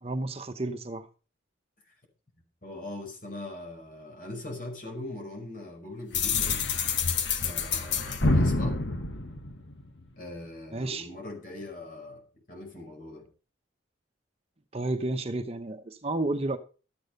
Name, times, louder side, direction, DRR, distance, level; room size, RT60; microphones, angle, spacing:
voice 1, 0.0-1.1 10.7-11.1 14.7-16.6, right 2 dB, 30° right, 0.9 m, -31 dB
voice 2, 2.6-6.6 7.4-8.9 10.2-12.2 12.5-13.3, left 2 dB, 45° left, 5.1 m, -40 dB
sound 1, 6.1-10.0, left 3 dB, 70° left, 1.4 m, -27 dB
13.0 x 8.7 x 5.3 m
head